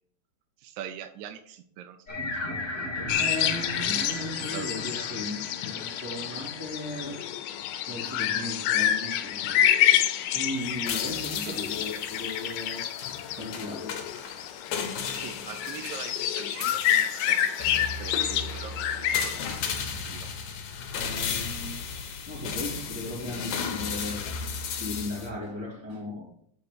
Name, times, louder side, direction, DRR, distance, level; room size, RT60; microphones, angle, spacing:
voice 1, 0.6-2.2 2.4-3.0 4.4-5.1 6.3-6.5 11.4-11.6 14.2-14.3 15.1-20.3, right 9 dB, 80° right, 8 dB, 1.8 m, -43 dB
sound 1, 2.1-7.3, left 1 dB, 25° left, 2.4 m, -37 dB
sound 2, 3.1-19.4, left 11 dB, 85° left, 2.3 m, -28 dB
voice 2, 3.2-7.2 7.9-9.7 10.2-12.9 13.2-14.2 20.9-26.3, left 1 dB, 10° right, -3 dB, 1.9 m, -37 dB
sound 3, 10.6-25.3, left 6 dB, 65° left, 2.3 m, -35 dB
8.7 x 4.2 x 6.7 m, 0.67 s
omnidirectional pair, 3.8 m